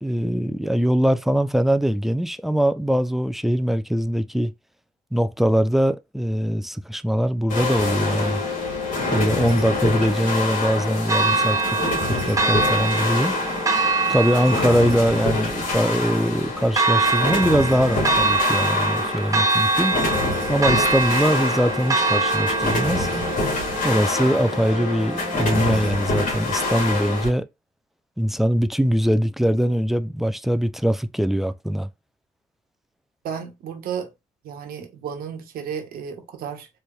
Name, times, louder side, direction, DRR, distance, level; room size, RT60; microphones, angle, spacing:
voice 1, 0.0-4.5 5.1-8.4 9.1-11.8 12.0-13.3 14.1-19.9 20.5-23.1 23.8-27.4 28.2-31.9, equal, ahead, 0.4 m, -22 dB
sound 1, 7.5-27.3, left 2 dB, 60° left, 2.0 m, -26 dB
Church bell, 11.1-25.1, right 3 dB, 20° right, 1.0 m, -24 dB
voice 2, 33.2-34.1 34.4-36.7, right 7 dB, 80° right, 1.1 m, -33 dB
4.1 x 3.2 x 2.3 m
cardioid pair, 80°, 15 cm